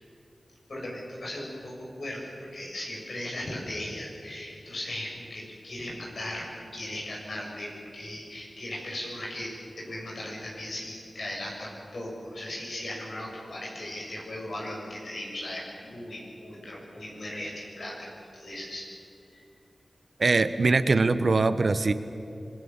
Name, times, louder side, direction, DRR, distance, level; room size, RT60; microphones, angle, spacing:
voice 1, 0.7-18.1 18.3-18.9 19.3-19.4, left 1 dB, 75° left, -2 dB, 7.4 m, -37 dB
voice 2, 20.2-21.9, right 3 dB, 60° right, 11 dB, 1.0 m, -22 dB
26.5 x 21.0 x 7.3 m, 2.7 s
wide cardioid pair, 70°, 0 cm